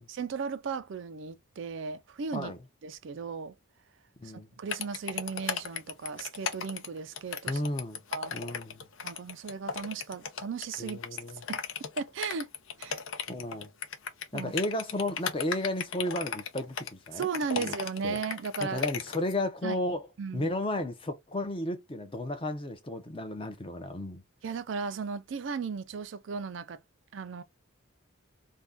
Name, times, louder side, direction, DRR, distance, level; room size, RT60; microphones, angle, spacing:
voice 1, 0.1-2.5 2.8-3.5 4.2-7.6 8.1-8.3 9.0-11.0 11.5-11.6 12.0-12.5 12.8-13.0 14.3-14.5 17.1-18.8 19.6-19.8 20.2-20.5 24.4-26.8 27.1-27.4, right 5 dB, 60° right, 0.4 m, -36 dB
sound 1, 4.7-19.3, left 6 dB, 65° left, 0.6 m, -36 dB
voice 2, 7.5-8.0 8.3-8.9 10.8-11.4 13.3-13.7 14.3-17.3 17.6-17.7 18.0-18.2 18.6-20.1 20.3-24.2, left 1 dB, 25° left, 0.6 m, -33 dB
2.6 x 2.2 x 3.4 m
head